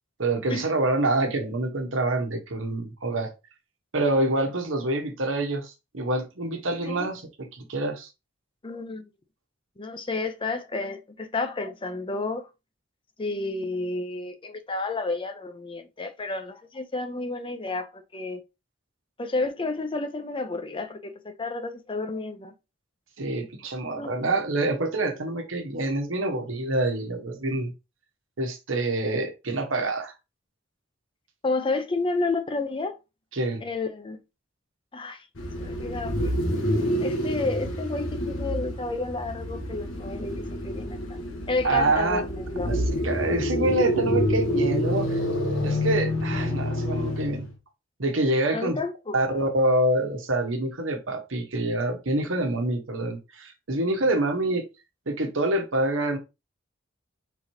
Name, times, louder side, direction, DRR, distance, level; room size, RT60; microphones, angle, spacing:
voice 1, 0.2-3.3 3.9-8.1 23.2-27.7 28.4-30.1 33.3-33.6 41.6-42.3 42.7-45.2 45.6-47.5 48.0-48.8 49.1-54.6 55.1-56.2, right 2 dB, 80° right, 1.2 m, -26 dB
voice 2, 8.6-9.1 9.8-12.5 13.2-18.4 19.2-22.5 24.0-24.1 31.4-33.0 33.6-34.2 34.9-35.3 35.6-36.3 37.0-41.0 41.5-42.7 48.5-49.4, left 3 dB, 25° left, 0.6 m, -31 dB
sound 1, 35.4-47.5, equal, 85° left, 1.4 m, -28 dB
4.6 x 4.0 x 2.7 m
head